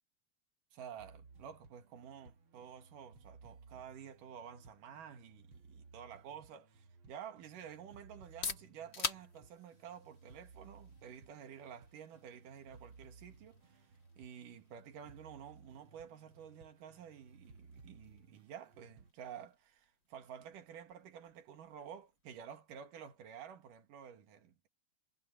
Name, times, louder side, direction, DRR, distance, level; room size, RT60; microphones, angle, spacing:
voice 1, 0.7-13.9 14.2-24.7, right 8 dB, 65° right, 3.3 m, -51 dB
sound 1, 1.0-19.1, right 4 dB, 45° right, 2.1 m, -60 dB
sound 2, 8.1-23.8, left 6 dB, 35° left, 2.5 m, -50 dB
omnidirectional pair, 4.2 m